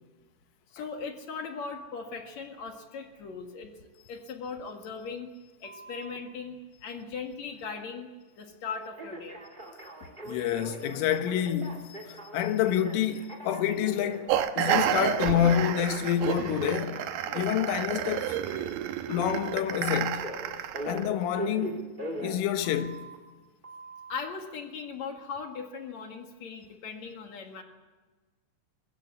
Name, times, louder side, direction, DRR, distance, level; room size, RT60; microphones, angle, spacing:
voice 1, 0.7-5.3 5.6-8.1 8.3-9.4 24.1-27.6, left 5 dB, 55° left, 2.2 m, -39 dB
Telephone, 5.6-6.2 9.0-23.1 23.6-24.1, right 1 dB, 15° right, 2.5 m, -41 dB
voice 2, 10.3-17.0 17.3-18.5 19.1-20.3 20.9-21.9 22.2-23.1, left 10 dB, 80° left, 3.8 m, -28 dB
sound 1, 14.3-21.1, right 10 dB, 80° right, 2.2 m, -30 dB
22.0 x 20.5 x 8.4 m
omnidirectional pair, 5.7 m